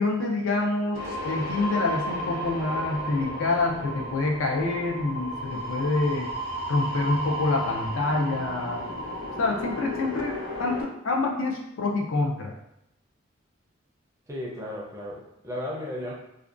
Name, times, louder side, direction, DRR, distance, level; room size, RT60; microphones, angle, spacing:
voice 1, 0.0-6.3 6.7-9.0 9.4-12.5, left 3 dB, 85° left, 0 dB, 0.5 m, -27 dB
sound 1, 0.9-10.8, equal, 55° left, 1.1 m, -33 dB
voice 2, 14.3-16.1, left 1 dB, 15° right, -3 dB, 0.4 m, -34 dB
2.5 x 2.1 x 2.4 m, 0.82 s
head